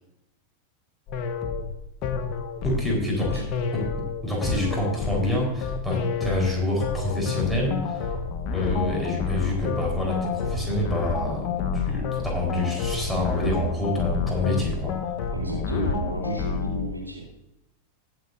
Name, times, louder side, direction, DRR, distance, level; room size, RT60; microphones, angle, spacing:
sound 1, 1.1-16.9, left 5 dB, 40° left, 1.2 m, -29 dB
voice 1, 2.6-3.4 3.7-8.1 8.5-14.9, left 1 dB, 5° right, -2 dB, 4.3 m, -27 dB
voice 2, 15.3-17.3, right 2 dB, 85° right, -3 dB, 3.6 m, -32 dB
20.0 x 7.9 x 2.7 m, 0.87 s
figure-of-eight pair, 90°, 0 cm